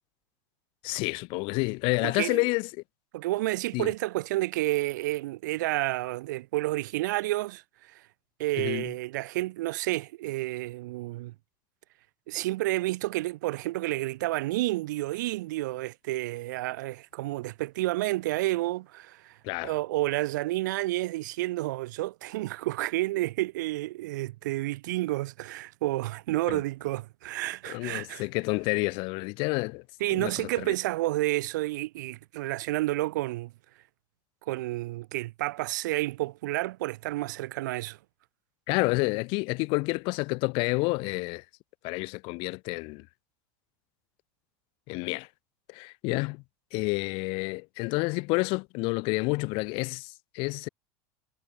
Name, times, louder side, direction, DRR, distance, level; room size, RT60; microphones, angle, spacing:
voice 1, 0.8-2.7 3.7-3.9 8.6-8.9 19.4-19.7 26.5-26.6 27.6-29.8 30.1-30.7 38.7-41.4 41.8-43.1 44.9-45.3 45.7-46.4 46.7-50.7, left 28 dB, 60° left, 1.6 m, -29 dB
voice 2, 2.0-2.4 3.1-8.0 8.4-11.3 12.3-19.4 19.6-28.2 30.0-33.5 34.5-38.0, right 18 dB, 85° right, 1.7 m, -30 dB
supercardioid pair, 125°, 10 cm